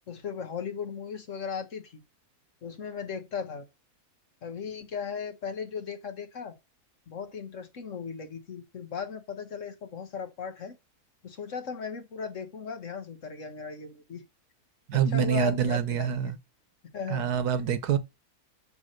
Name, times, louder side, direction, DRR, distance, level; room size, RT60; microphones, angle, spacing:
voice 1, 0.1-2.0 2.6-3.7 4.4-6.5 7.1-10.8 11.2-14.2 14.9-16.4 16.9-17.3, left 6 dB, 55° left, 1.6 m, -37 dB
voice 2, 14.9-16.4 17.1-18.0, right 8 dB, 85° right, 1.6 m, -26 dB
10.5 x 3.6 x 6.6 m
omnidirectional pair, 1.6 m